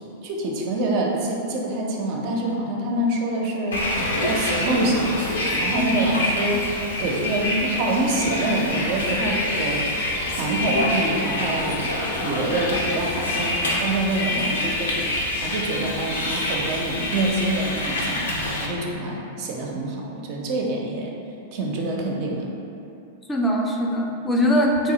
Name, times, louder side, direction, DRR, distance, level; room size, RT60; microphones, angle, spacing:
voice 1, 0.0-3.8 4.2-5.2 5.6-6.7 7.0-9.8 10.3-11.9 12.2-15.1 15.4-21.1 21.5-22.5, right 1 dB, 50° right, 0 dB, 0.4 m, -26 dB
Bus, 3.7-18.7, left 1 dB, 80° left, 0.5 m, -26 dB
voice 2, 5.7-6.0 23.3-24.9, equal, 15° left, 0 dB, 0.4 m, -22 dB
3.4 x 2.0 x 2.7 m, 2.7 s
hypercardioid pair, 100°, 0 cm